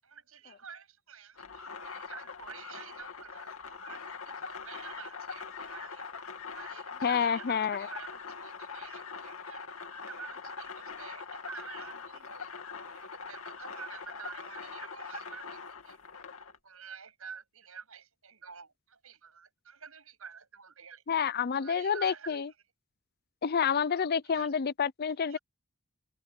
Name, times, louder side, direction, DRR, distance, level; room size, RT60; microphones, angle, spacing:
voice 1, 0.0-6.1 6.5-9.6 10.0-16.0 16.5-21.0 21.5-22.5 24.2-24.5 25.2-25.4, right 6 dB, 75° right, 7.7 m, -49 dB
sound 1, 1.4-16.6, left 5 dB, 80° left, 2.5 m, -43 dB
voice 2, 7.0-7.9 21.1-22.5 23.4-25.4, left 7 dB, 45° left, 0.5 m, -28 dB
head